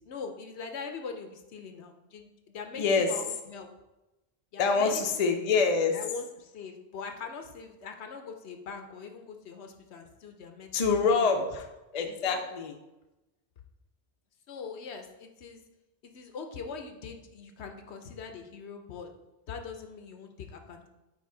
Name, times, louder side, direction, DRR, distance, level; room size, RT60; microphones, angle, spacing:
voice 1, 0.0-3.7 4.5-5.0 5.3-5.4 5.9-11.5 12.1-12.4 14.5-15.6 16.0-19.1 19.5-20.9, left 5 dB, 70° left, 5 dB, 0.9 m, -42 dB
voice 2, 2.8-3.1 4.6-6.0 10.7-11.7 11.9-12.7, left 4 dB, 45° left, 4 dB, 0.6 m, -25 dB
8.8 x 3.0 x 3.8 m, 1.0 s
omnidirectional pair, 1.2 m